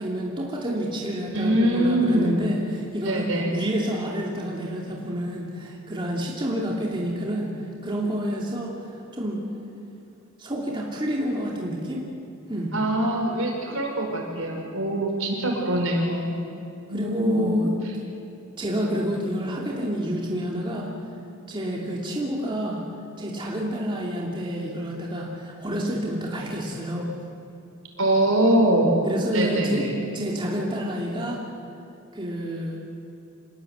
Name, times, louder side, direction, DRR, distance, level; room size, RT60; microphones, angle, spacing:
voice 1, 0.0-7.5 7.8-8.7 9.1-9.4 10.4-12.0 12.5-12.7 16.9-17.7 18.6-20.9 21.5-22.8 23.2-27.1 29.1-29.9 30.1-31.4 32.1-32.8, equal, 25° right, -3 dB, 2.8 m, -29 dB
voice 2, 1.3-2.4 3.0-3.5 12.7-16.4 16.9-17.6 28.0-29.1 29.3-30.0, right 1 dB, 70° right, 1 dB, 5.3 m, -23 dB
26.5 x 20.5 x 8.1 m, 2.6 s
head